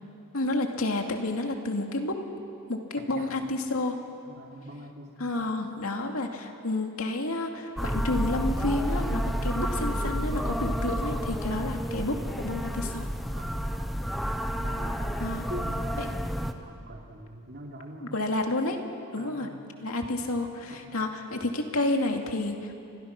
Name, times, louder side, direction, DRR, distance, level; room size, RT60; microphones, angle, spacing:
voice 1, 0.3-2.2 2.7-4.0 5.2-13.1 15.2-15.5 16.0-16.1 18.0-18.8 19.1-19.5 19.8-22.8, left 2 dB, 75° left, 3 dB, 2.4 m, -30 dB
voice 2, 3.0-3.3 4.2-5.4 13.3-13.7 14.5-18.2 19.2-19.6 20.7-21.0, right 1 dB, 50° right, 0 dB, 3.1 m, -43 dB
sound 1, 7.8-16.5, equal, ahead, 1.0 m, -30 dB
29.5 x 25.5 x 6.0 m, 2.5 s
head